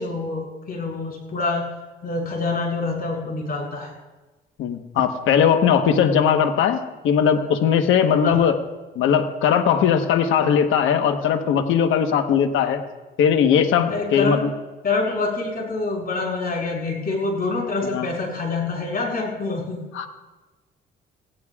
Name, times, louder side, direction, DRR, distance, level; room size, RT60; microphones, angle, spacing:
voice 1, 0.0-1.7 2.0-3.9 8.2-8.5 13.9-14.4 14.8-19.8, left 3 dB, 50° left, 0 dB, 6.6 m, -26 dB
voice 2, 4.6-8.6 9.0-12.8 13.2-14.5 17.8-18.1 19.9-20.1, left 8 dB, 85° left, 7 dB, 1.2 m, -19 dB
29.0 x 16.5 x 2.4 m, 1.2 s
cardioid pair, 90°, 20 cm